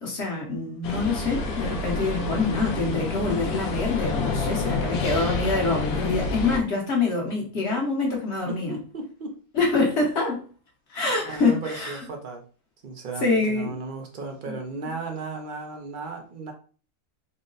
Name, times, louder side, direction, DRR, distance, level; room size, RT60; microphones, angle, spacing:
voice 1, 0.0-8.8 9.5-10.4 10.9-12.0 13.2-13.8 14.5-14.6, left 3 dB, 50° left, -1 dB, 1.2 m, -25 dB
sound 1, 0.8-6.6, left 3 dB, 75° left, 1.1 m, -28 dB
voice 2, 8.5-9.4 11.2-12.4 12.8-16.5, right 4 dB, 70° right, 3 dB, 0.4 m, -35 dB
3.9 x 2.1 x 3.8 m, 0.39 s
omnidirectional pair, 1.6 m